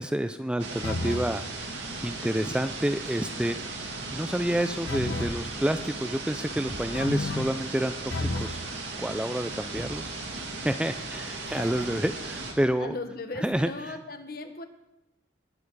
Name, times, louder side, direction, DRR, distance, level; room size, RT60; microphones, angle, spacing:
voice 1, 0.0-1.4 2.0-3.6 4.1-8.6 9.0-10.1 10.6-13.0 13.4-13.7, right 1 dB, 5° right, 9 dB, 0.3 m, -29 dB
sound 1, 0.6-12.5, right 3 dB, 80° right, 2.4 m, -37 dB
sound 2, 0.8-1.4 4.9-5.4 6.9-7.6 8.1-8.6, left 2 dB, 90° left, 0.9 m, -31 dB
sound 3, 5.2-5.8 6.7-7.3 8.2-8.8 9.8-10.4, right 1 dB, 20° right, 0.7 m, -43 dB
voice 2, 11.4-12.0 12.8-14.6, left 2 dB, 50° left, 7 dB, 1.2 m, -38 dB
20.0 x 7.2 x 4.7 m, 0.90 s
head